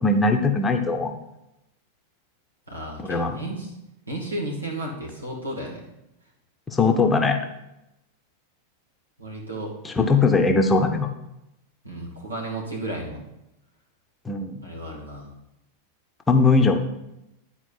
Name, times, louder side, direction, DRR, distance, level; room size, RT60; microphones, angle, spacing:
voice 1, 0.0-1.1 3.0-3.4 6.7-7.4 9.8-11.1 14.3-14.6 16.3-16.8, left 3 dB, 15° left, 5 dB, 0.8 m, -20 dB
voice 2, 2.7-3.7 4.1-5.8 9.2-9.7 11.8-13.2 14.6-15.3, right 1 dB, 80° right, -2 dB, 2.2 m, -33 dB
10.5 x 4.6 x 5.6 m, 0.88 s
figure-of-eight pair, 90°, 0 cm